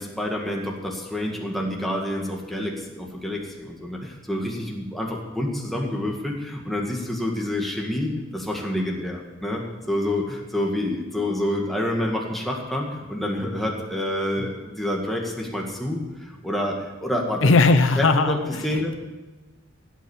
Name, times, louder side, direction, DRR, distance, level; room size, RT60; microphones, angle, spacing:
voice 1, 0.0-9.6 9.9-17.5 18.0-18.9, left 1 dB, ahead, -1 dB, 1.9 m, -28 dB
voice 2, 17.4-18.9, left 3 dB, 75° left, 9 dB, 0.7 m, -19 dB
16.5 x 8.5 x 7.3 m, 1.2 s
head